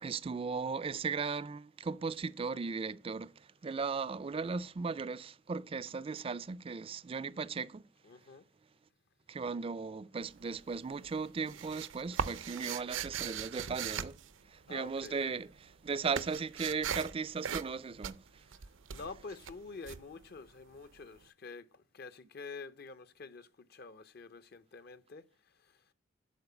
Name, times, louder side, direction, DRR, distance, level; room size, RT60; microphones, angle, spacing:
voice 1, 0.0-7.8 9.3-14.2 14.5-18.4, right 5 dB, 30° right, 0.4 m, -37 dB
voice 2, 8.0-8.4 14.7-15.3 18.9-25.2, left 4 dB, 55° left, 0.7 m, -48 dB
sound 1, 10.2-10.7 11.0-15.1 15.4-20.9, right 7 dB, 80° right, 0.6 m, -40 dB
12.0 x 4.5 x 6.7 m
head